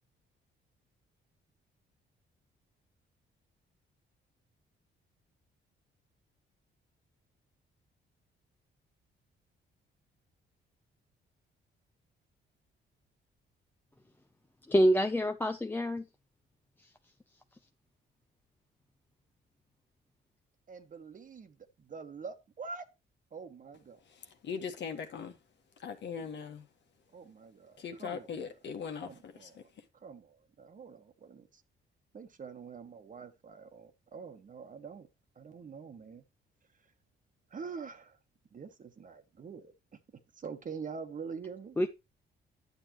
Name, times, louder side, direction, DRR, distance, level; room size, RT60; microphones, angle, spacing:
voice 1, 14.7-16.0 41.8-41.9, equal, 10° left, 0.6 m, -26 dB
voice 2, 20.7-22.9 23.3-24.0 26.1-26.3 27.1-28.4 29.0-29.7 30.0-31.6 32.1-35.1 35.4-36.2 37.5-38.2 38.5-40.0 40.3-41.8, right 5 dB, 40° right, 1.3 m, -45 dB
voice 3, 24.4-25.3 25.8-26.6 27.8-29.5, left 6 dB, 60° left, 1.5 m, -40 dB
10.5 x 7.4 x 3.0 m
cardioid pair, 90°, 20 cm